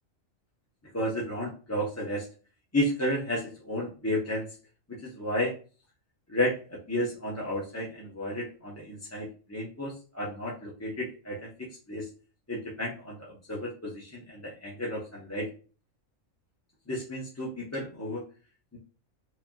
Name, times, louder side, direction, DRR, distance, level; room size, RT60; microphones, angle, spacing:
voice 1, 0.9-2.3 2.7-4.5 4.9-5.5 6.3-12.1 12.5-15.5 16.9-18.2 18.7-18.8, left 1 dB, 15° left, -5 dB, 0.7 m, -32 dB
4.9 x 2.8 x 2.3 m, 0.36 s
omnidirectional pair, 1.4 m